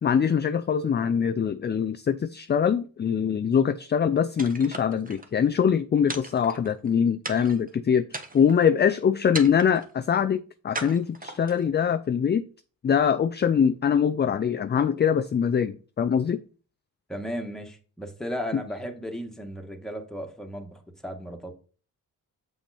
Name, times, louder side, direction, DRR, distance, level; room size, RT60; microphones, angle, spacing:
voice 1, 0.0-12.4 12.8-16.4, left 7 dB, 30° left, 0.4 m, -23 dB
sound 1, 4.4-5.3 6.1-6.9 7.2-7.7 8.1-8.7 9.3-9.9 10.7-11.7, right 2 dB, 20° right, 1.3 m, -37 dB
voice 2, 17.1-21.5, equal, ahead, 1.7 m, -35 dB
7.1 x 5.8 x 4.3 m
cardioid pair, 80°, 37 cm